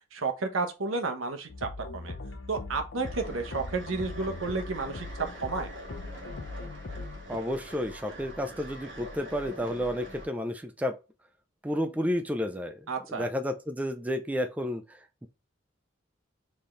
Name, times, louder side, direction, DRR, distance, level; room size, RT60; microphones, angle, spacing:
voice 1, 0.1-2.1 2.5-5.7 12.9-13.3, right 3 dB, 85° right, 1.0 m, -32 dB
sound 1, 1.5-7.4, left 3 dB, 60° left, 0.6 m, -40 dB
sound 2, 3.0-10.3, equal, 60° right, 1.6 m, -44 dB
voice 2, 7.3-10.9 11.6-12.8 13.1-14.8, equal, 5° right, 0.4 m, -31 dB
4.3 x 3.5 x 3.1 m
head